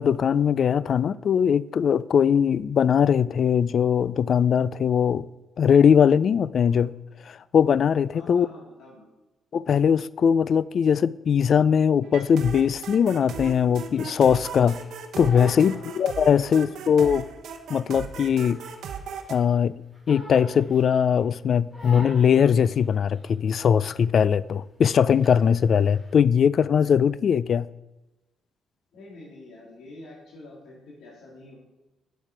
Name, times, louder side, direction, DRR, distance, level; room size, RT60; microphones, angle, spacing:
voice 1, 0.0-5.3 5.6-6.9 7.3-8.5 9.5-14.8 15.2-17.3 17.7-18.6 19.3-19.7 20.1-27.7, left 7 dB, 55° left, 0.3 m, -20 dB
voice 2, 8.1-9.1 15.7-16.1 16.4-16.6 28.9-31.6, left 2 dB, 75° left, 3.2 m, -46 dB
sound 1, 12.0-19.4, right 7 dB, 70° right, 0.9 m, -37 dB
Crying sobbing, 13.9-16.6 16.9-19.2 19.5-21.2 21.7-23.6 23.9-24.2 24.5-26.1, left 1 dB, 15° left, 3.8 m, -44 dB
8.3 x 7.4 x 5.1 m
cardioid pair, 90°, 0 cm